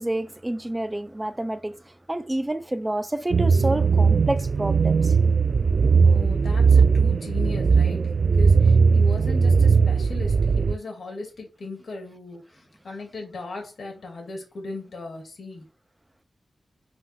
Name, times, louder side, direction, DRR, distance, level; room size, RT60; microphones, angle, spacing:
voice 1, 0.0-5.1, right 1 dB, 15° right, 0.8 m, -29 dB
sound 1, 3.3-10.8, right 5 dB, 65° right, 0.4 m, -19 dB
voice 2, 6.0-15.6, left 3 dB, 75° left, 2.4 m, -37 dB
7.8 x 2.9 x 5.9 m
wide cardioid pair, 85°, 0 cm